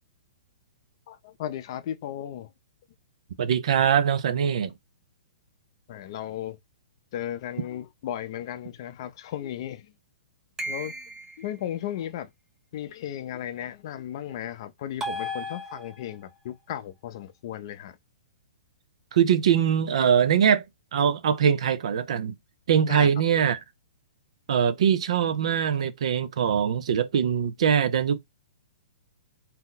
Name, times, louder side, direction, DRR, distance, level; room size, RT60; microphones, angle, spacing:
voice 1, 1.1-2.5 5.9-6.6 7.1-9.9 10.7-10.9 11.4-12.3 12.7-18.0 22.8-23.4, left 11 dB, 45° left, 0.5 m, -35 dB
voice 2, 3.4-4.7 19.1-20.6 20.9-22.3 22.7-23.6 24.5-28.2, right 8 dB, 65° right, 0.5 m, -22 dB
sound 1, 10.6-11.5 15.0-16.2, equal, 10° right, 0.7 m, -34 dB
2.8 x 2.1 x 3.8 m
hypercardioid pair, 155°, 4 cm